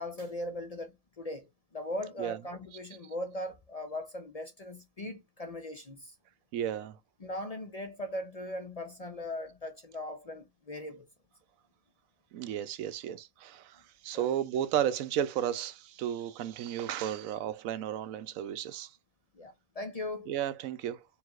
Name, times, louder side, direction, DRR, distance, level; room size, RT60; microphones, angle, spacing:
voice 1, 0.0-6.1 7.2-11.0 14.1-14.3 19.3-20.3, left 1 dB, 40° left, 0.6 m, -39 dB
voice 2, 6.5-7.0 12.3-18.9 20.3-21.0, right 10 dB, 90° right, 1.0 m, -33 dB
4.7 x 3.4 x 2.4 m
omnidirectional pair, 1.4 m